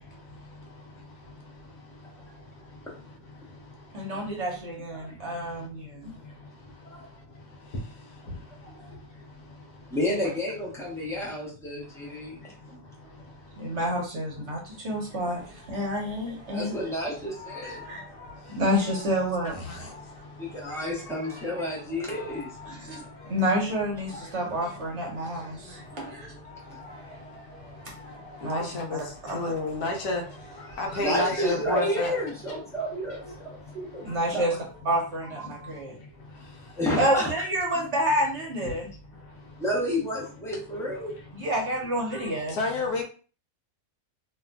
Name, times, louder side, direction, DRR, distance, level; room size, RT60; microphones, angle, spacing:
voice 1, 3.9-6.1 8.9-9.0 13.6-16.8 17.6-18.0 18.5-19.6 21.6-21.7 22.7-23.0 23.3-26.3 27.8-27.9 28.4-29.5 34.0-34.5 34.8-36.0 37.0-38.9 41.3-42.6, equal, 50° right, 1.0 m, -29 dB
voice 2, 9.9-12.4 12.7-12.8 16.5-17.8 20.4-22.5 26.7-26.8 30.7-34.0 34.3-34.6 35.4-35.7 36.8-37.3 37.8-37.9 38.6-38.7 39.6-41.1 42.1-42.2, equal, 5° left, 0.3 m, -31 dB
sound 1, 15.3-34.8, left 2 dB, 40° left, 1.0 m, -48 dB
voice 3, 28.4-29.0 29.3-30.2 30.8-32.2 42.6-43.0, left 2 dB, 75° left, 1.1 m, -29 dB
2.8 x 2.5 x 2.2 m
omnidirectional pair, 1.7 m